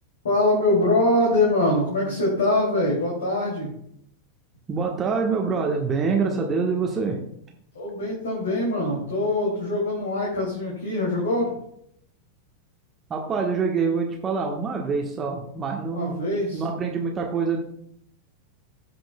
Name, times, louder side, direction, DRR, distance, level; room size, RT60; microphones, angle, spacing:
voice 1, 0.2-3.7 7.7-11.5 15.9-16.6, left 1 dB, 65° left, -3 dB, 2.6 m, -23 dB
voice 2, 4.7-7.2 13.1-16.2 16.5-17.6, right 5 dB, 20° right, 0 dB, 1.2 m, -25 dB
16.5 x 6.0 x 2.3 m, 0.71 s
figure-of-eight pair, 90°, 0 cm